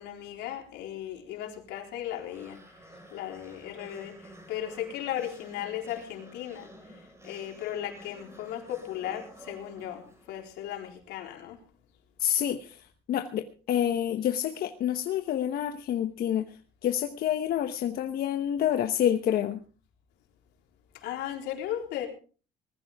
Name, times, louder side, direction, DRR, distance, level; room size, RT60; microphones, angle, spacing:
voice 1, 0.0-2.6 3.1-6.7 7.2-11.6 21.0-22.1, left 11 dB, 90° left, 2 dB, 4.0 m, -36 dB
sound 1, 2.1-10.6, right 1 dB, 15° right, 5.1 m, -51 dB
voice 2, 12.2-12.8 13.1-16.5 16.8-19.6, left 10 dB, 65° left, 7 dB, 1.1 m, -28 dB
20.0 x 14.5 x 3.6 m, 0.39 s
cardioid pair, 110°, 17 cm